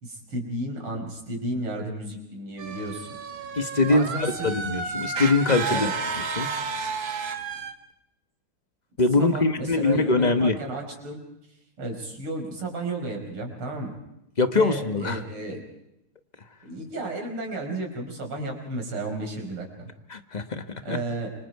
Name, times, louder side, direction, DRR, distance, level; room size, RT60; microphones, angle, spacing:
voice 1, 0.0-3.1 3.9-4.5 5.7-5.9 9.2-11.2 11.8-13.9 14.5-15.6 16.7-19.9 20.8-21.3, right 2 dB, 85° right, 2 dB, 6.0 m, -33 dB
sound 1, 2.6-7.7, right 5 dB, 60° right, 2.4 m, -31 dB
voice 2, 3.6-5.9 6.2-6.5 9.0-10.6 14.4-15.2 20.1-21.0, left 3 dB, 30° left, 8 dB, 0.9 m, -23 dB
29.0 x 25.0 x 4.7 m, 0.81 s
omnidirectional pair, 2.4 m